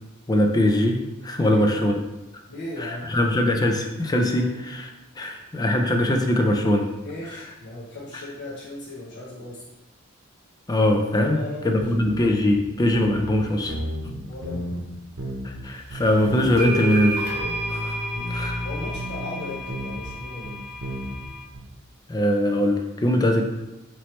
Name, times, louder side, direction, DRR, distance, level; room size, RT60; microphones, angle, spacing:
voice 1, 0.3-2.0 2.8-4.9 5.2-6.9 10.7-13.7 15.4-17.2 17.7-18.0 18.3-18.6 22.1-23.4, left 1 dB, 20° left, 3 dB, 0.4 m, -22 dB
voice 2, 1.4-1.8 2.5-3.1 4.4-4.5 5.2-5.4 7.0-9.6 11.2-12.1 14.3-14.7 17.9-20.6, left 2 dB, 55° left, -6 dB, 0.7 m, -37 dB
sound 1, 11.8-12.3 12.5-12.6 12.9-13.4 13.7-14.8 15.2-16.7 17.0-21.6, equal, 60° right, 0.9 m, -33 dB
sound 2, 16.0-16.1 16.6-21.4, right 1 dB, 85° left, 1.1 m, -31 dB
4.4 x 2.9 x 3.1 m, 1.0 s
head